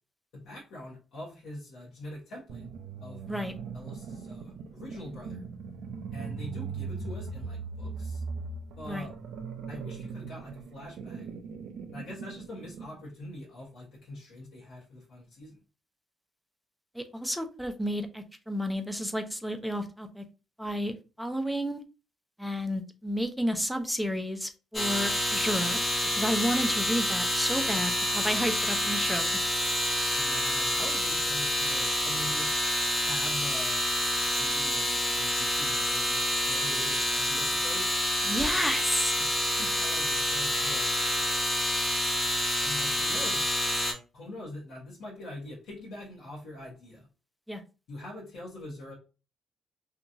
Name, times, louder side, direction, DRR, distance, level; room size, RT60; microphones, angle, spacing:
voice 1, 0.3-2.6 3.0-5.4 6.1-8.2 8.8-9.1 9.7-11.3 11.9-15.6 30.2-32.5 33.0-33.8 34.3-38.0 39.2-40.9 42.6-43.4 44.1-47.1 47.9-48.9, left 1 dB, 80° left, -5 dB, 0.9 m, -43 dB
sound 1, 2.5-13.0, right 5 dB, 80° right, 0.5 m, -39 dB
voice 2, 16.9-20.2 20.6-21.8 22.4-29.3 38.3-39.2 47.5-47.6, equal, ahead, 7 dB, 0.5 m, -31 dB
sound 2, 24.7-43.9, left 1 dB, 20° left, 1.0 m, -28 dB
2.8 x 2.3 x 2.6 m, 0.33 s
cardioid pair, 90°, 0 cm